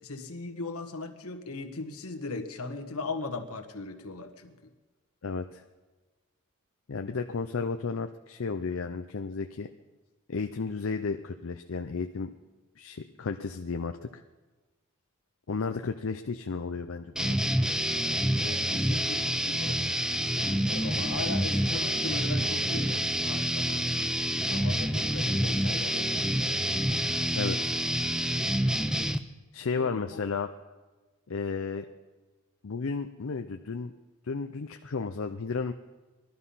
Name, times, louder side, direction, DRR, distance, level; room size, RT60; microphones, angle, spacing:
voice 1, 0.0-4.5 18.4-19.8 20.5-24.0 24.5-26.5 29.8-30.2, left 3 dB, 80° left, 6 dB, 1.5 m, -38 dB
voice 2, 5.2-5.6 6.9-9.7 10.3-12.3 12.8-14.2 15.5-17.4 27.3-27.7 29.5-30.5 31.3-31.9 32.6-33.9 34.2-35.7, left 4 dB, 65° left, 6 dB, 0.5 m, -33 dB
sound 1, 17.2-29.2, equal, 5° right, 0.5 m, -28 dB
19.5 x 12.0 x 5.6 m, 1.2 s
head